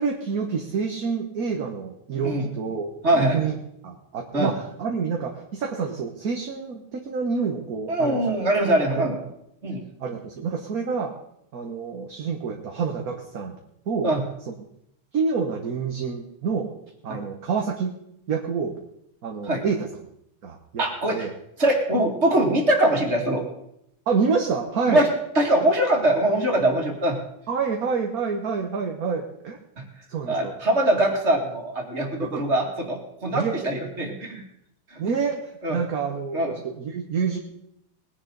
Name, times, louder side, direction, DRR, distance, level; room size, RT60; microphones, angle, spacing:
voice 1, 0.0-3.5 3.8-8.2 8.9-9.2 10.0-11.1 11.5-13.6 13.9-14.1 14.5-14.6 15.1-16.7 17.0-17.9 18.3-18.8 19.2-19.9 20.4-20.8 21.1-21.3 24.1-25.0 27.5-29.6 30.1-30.5 32.3-32.4 33.3-33.5 35.0-37.4, right 5 dB, 50° right, 2 dB, 1.4 m, -27 dB
voice 2, 3.0-3.4 4.3-4.5 7.9-9.2 9.6-9.8 14.0-14.2 17.1-17.2 19.4-19.6 20.8-21.3 21.6-23.4 24.9-25.1 25.3-27.2 30.3-34.4 35.6-35.8 36.3-36.5, right 1 dB, 30° right, 1 dB, 2.6 m, -22 dB
20.5 x 10.5 x 4.0 m, 0.78 s
omnidirectional pair, 2.4 m